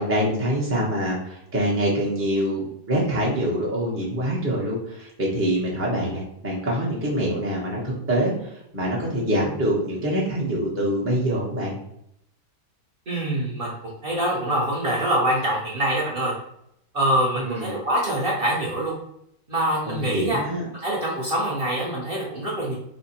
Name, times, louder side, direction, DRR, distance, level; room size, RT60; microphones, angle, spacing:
voice 1, 0.0-11.7 17.3-17.7 19.9-20.7, equal, 15° right, -5 dB, 0.5 m, -25 dB
voice 2, 13.1-13.7 14.0-16.3 16.9-18.9 19.5-20.4 20.7-22.7, right 1 dB, 45° right, -5 dB, 0.8 m, -24 dB
3.5 x 2.1 x 4.1 m, 0.76 s
omnidirectional pair, 1.8 m